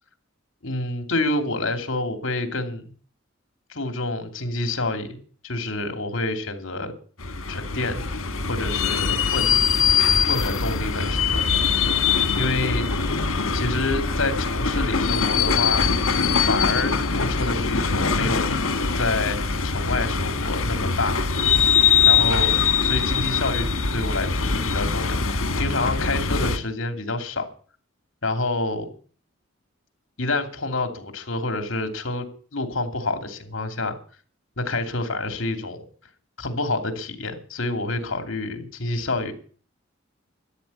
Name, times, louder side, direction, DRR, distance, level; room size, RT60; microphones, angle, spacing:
voice 1, 0.6-2.9 3.7-5.2 5.4-6.9 7.5-8.0 8.5-9.6 10.2-11.4 12.4-12.9 13.5-15.8 16.5-18.5 18.9-19.4 19.6-21.2 22.1-27.5 28.2-28.9 30.2-32.2 32.5-34.0 34.6-35.8 36.4-39.3, left 2 dB, 70° left, 7 dB, 2.8 m, -28 dB
sound 1, 7.2-26.6, left 5 dB, 85° left, 1.6 m, -22 dB
13.5 x 10.5 x 8.4 m, 0.43 s
head